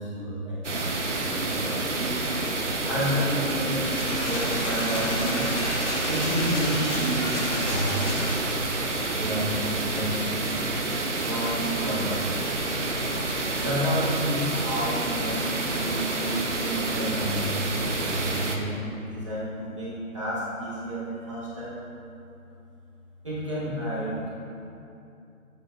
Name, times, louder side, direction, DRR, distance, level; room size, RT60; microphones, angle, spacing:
voice 1, 0.0-2.2 2.9-5.5 6.1-8.2 9.1-10.5 11.2-12.3 13.6-21.7 23.2-24.3, equal, 20° right, -11 dB, 1.1 m, -30 dB
sound 1, 0.6-18.6, right 2 dB, 55° right, 0.6 m, -29 dB
sound 2, 3.6-8.6, left 1 dB, 55° left, 1.4 m, -31 dB
8.2 x 3.7 x 3.2 m, 2.7 s
figure-of-eight pair, 170°, 43 cm